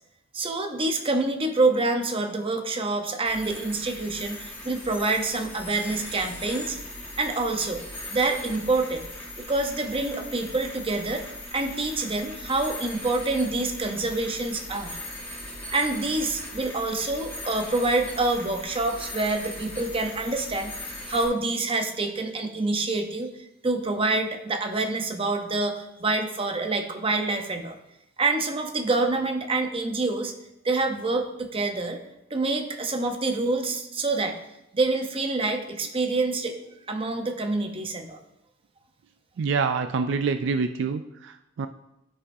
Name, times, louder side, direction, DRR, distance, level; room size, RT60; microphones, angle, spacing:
voice 1, 0.3-6.8 7.2-7.8 8.1-9.0 9.5-11.2 11.5-15.0 15.7-23.3 23.6-27.8 28.2-30.3 30.6-32.0 32.3-34.4 34.7-36.6 36.9-38.2, right 3 dB, 30° right, 5 dB, 0.8 m, -26 dB
sound 1, 3.2-21.2, left 1 dB, 10° left, 1.8 m, -39 dB
voice 2, 39.4-41.7, right 5 dB, 65° right, 8 dB, 0.4 m, -26 dB
12.5 x 5.9 x 2.7 m, 0.87 s
head